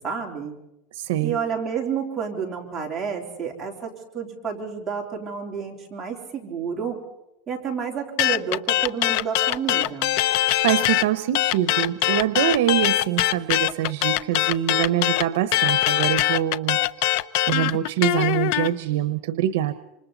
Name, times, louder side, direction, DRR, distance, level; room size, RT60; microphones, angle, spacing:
voice 1, 0.0-0.5 1.2-7.0 7.5-10.2, right 6 dB, 20° right, -1 dB, 3.7 m, -30 dB
voice 2, 0.9-1.4 10.6-16.8 17.5-19.7, right 12 dB, 80° right, 11 dB, 1.0 m, -24 dB
sound 1, 8.2-11.1 11.3-18.7, left 15 dB, 60° left, 0.7 m, -22 dB
27.0 x 26.5 x 4.1 m, 0.86 s
supercardioid pair, 155°, 0 cm